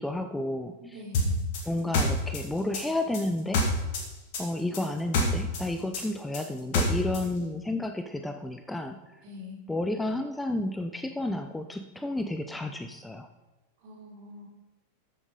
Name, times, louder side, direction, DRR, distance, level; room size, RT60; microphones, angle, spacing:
voice 1, 0.0-1.0 1.6-3.7 4.4-9.2 9.7-13.3, left 1 dB, 5° left, 7 dB, 0.6 m, -31 dB
voice 2, 0.8-1.4 9.2-9.6 13.8-14.5, left 3 dB, 45° right, -3 dB, 3.9 m, -44 dB
sound 1, 1.1-4.1 4.3-7.3, left 2 dB, 50° left, 2.4 m, -27 dB
12.5 x 7.3 x 5.1 m, 1.1 s
figure-of-eight pair, 90°, 0 cm